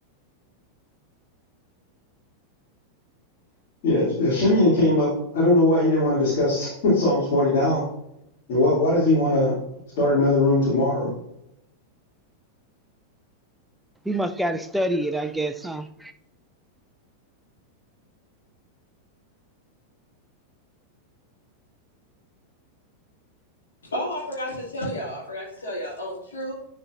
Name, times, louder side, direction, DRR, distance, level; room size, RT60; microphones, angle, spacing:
voice 1, 3.8-7.8 8.5-9.5 10.0-11.1, left 1 dB, 45° left, 2.7 m, -20 dB
voice 2, 14.0-16.1, right 1 dB, 5° right, 0.5 m, -27 dB
voice 3, 23.9-26.6, equal, 70° left, 2.5 m, -31 dB
10.5 x 4.4 x 2.6 m
figure-of-eight pair, 90°, 0 cm